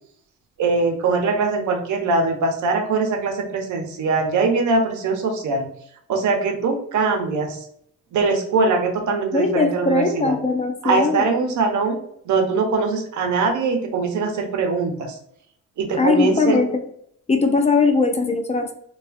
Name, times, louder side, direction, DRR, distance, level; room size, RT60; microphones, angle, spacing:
voice 1, 0.6-5.7 6.1-7.7 8.1-10.3 10.8-15.1 15.8-16.6, right 4 dB, 75° right, 3 dB, 0.9 m, -22 dB
voice 2, 9.3-11.2 15.9-16.7 17.3-18.7, left 4 dB, 20° left, 5 dB, 0.5 m, -20 dB
4.5 x 2.4 x 2.6 m, 0.68 s
cardioid pair, 90°, 30 cm